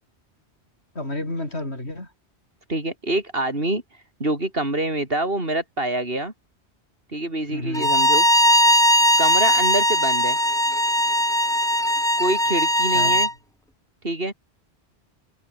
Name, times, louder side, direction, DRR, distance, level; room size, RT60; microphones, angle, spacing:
voice 1, 1.0-2.1 7.5-8.1 12.9-13.3, left 1 dB, 75° left, 7.2 m, -31 dB
voice 2, 2.7-3.8 4.2-6.3 7.1-8.3 9.2-10.4 12.2-13.3 14.0-14.3, right 1 dB, 60° right, 6.3 m, -26 dB
Bowed string instrument, 7.7-13.3, equal, 5° left, 0.9 m, -19 dB
omnidirectional pair, 1.1 m